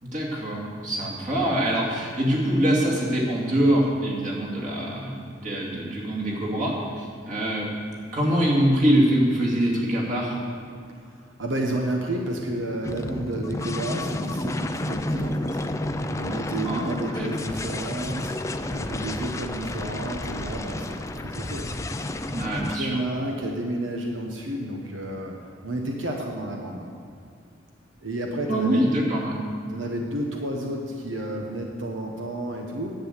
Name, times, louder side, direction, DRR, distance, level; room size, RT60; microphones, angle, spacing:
voice 1, 0.0-7.7 8.1-10.4 16.6-17.4 22.3-23.0 28.5-29.4, right 1 dB, 40° right, -4 dB, 2.7 m, -24 dB
voice 2, 11.4-15.6 16.2-18.3 18.7-21.8 22.8-25.3 25.6-26.9 28.0-28.9 29.7-32.9, right 1 dB, 90° right, 1 dB, 1.2 m, -31 dB
sound 1, 12.8-22.8, left 1 dB, 15° left, 0.4 m, -31 dB
10.5 x 7.9 x 8.3 m, 2.4 s
head